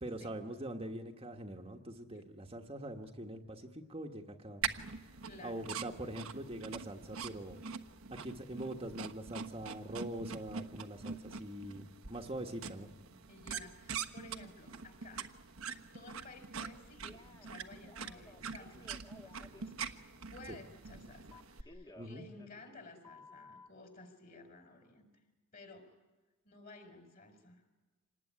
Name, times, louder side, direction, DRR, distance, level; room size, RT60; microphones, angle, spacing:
voice 1, 0.0-4.6 5.4-7.6 8.1-12.9 20.5-20.6 22.0-22.2, right 1 dB, 25° right, 2 dB, 1.4 m, -43 dB
sound 1, 4.6-21.6, right 6 dB, 70° right, 1.2 m, -44 dB
voice 2, 5.2-5.7 13.3-15.3 15.9-18.9 19.2-19.9 20.3-25.1 25.5-25.9 26.4-27.6, left 3 dB, 40° left, 6 dB, 4.7 m, -54 dB
Telephone, 17.0-17.5 17.8-19.6 21.3-22.8 23.0-23.7, left 2 dB, 20° left, 1.3 m, -56 dB
26.5 x 19.5 x 9.8 m, 1.2 s
head